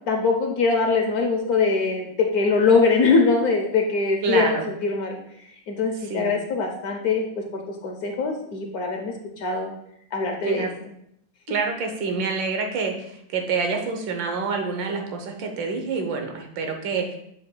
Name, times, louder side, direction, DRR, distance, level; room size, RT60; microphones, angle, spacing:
voice 1, 0.1-5.2 5.7-7.3 7.5-9.7 10.1-10.7, left 4 dB, 60° left, 2 dB, 1.1 m, -22 dB
voice 2, 4.2-4.6 6.1-6.3 10.4-10.7 11.5-12.9 13.3-17.1, right 5 dB, 75° right, 3 dB, 1.6 m, -27 dB
7.3 x 7.2 x 2.2 m, 0.73 s
omnidirectional pair, 2.1 m